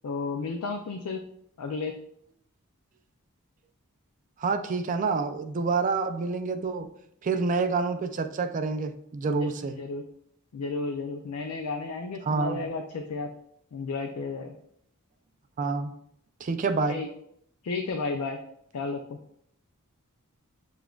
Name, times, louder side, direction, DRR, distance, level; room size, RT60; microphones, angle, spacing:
voice 1, 0.0-1.2 1.6-1.9 9.3-10.0 10.5-13.3 13.7-14.6 16.9-17.1 17.6-18.4 18.7-19.2, left 3 dB, 70° left, 4 dB, 0.4 m, -33 dB
voice 2, 4.4-6.9 7.2-9.7 12.2-12.6 15.6-15.9 16.4-17.0, right 4 dB, 35° right, 8 dB, 0.3 m, -28 dB
6.8 x 2.4 x 2.3 m, 0.71 s
head